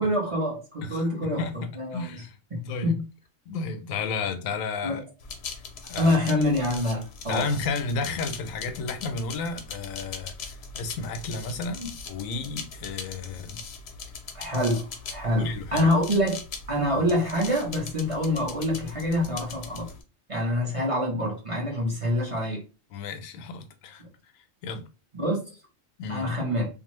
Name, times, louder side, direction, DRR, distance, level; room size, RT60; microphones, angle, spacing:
voice 1, 0.0-1.4 1.8-2.2 2.5-3.0 4.8-5.0 6.0-7.5 14.3-16.4 16.7-19.9 20.3-22.6 24.0-24.1 25.1-25.5 26.1-26.7, left 1 dB, 30° right, 0.8 m, -26 dB
voice 2, 0.8-2.4 2.7-2.9 3.5-5.0 5.9-6.1 7.3-13.6 15.4-15.9 17.0-17.1 22.9-24.0 24.6-24.9 26.0-26.3, left 4 dB, 85° left, 1.0 m, -32 dB
sound 1, 5.2-20.0, left 5 dB, 60° left, 0.7 m, -40 dB
2.6 x 2.3 x 3.0 m
omnidirectional pair, 1.4 m